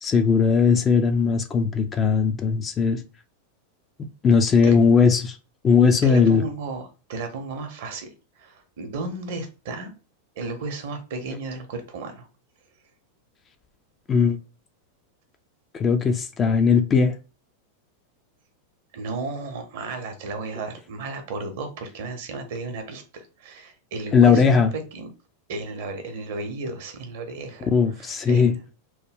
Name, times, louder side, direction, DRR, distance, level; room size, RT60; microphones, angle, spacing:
voice 1, 0.0-3.0 4.2-5.4 5.6-6.4 14.1-14.4 15.7-17.1 24.1-24.7 27.6-28.6, left 5 dB, 25° left, 0.4 m, -18 dB
voice 2, 6.0-8.1 8.4-9.9 10.4-12.3 18.9-24.6 24.9-25.1 25.5-27.7 28.0-28.4, right 3 dB, 50° right, 0.8 m, -34 dB
3.1 x 2.2 x 3.4 m
figure-of-eight pair, 90°, 0 cm